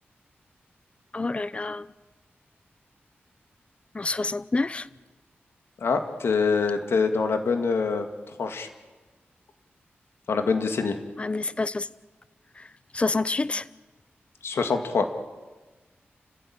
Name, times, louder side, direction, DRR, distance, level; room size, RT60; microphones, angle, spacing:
voice 1, 1.1-1.8 3.9-4.8 11.2-11.9 12.9-13.6, left 3 dB, 30° left, 0.7 m, -27 dB
voice 2, 5.8-8.1 8.4-8.7 10.3-11.0 14.4-15.1, left 4 dB, 80° left, 2.1 m, -24 dB
30.0 x 15.5 x 8.8 m
wide cardioid pair, 105°, 4 cm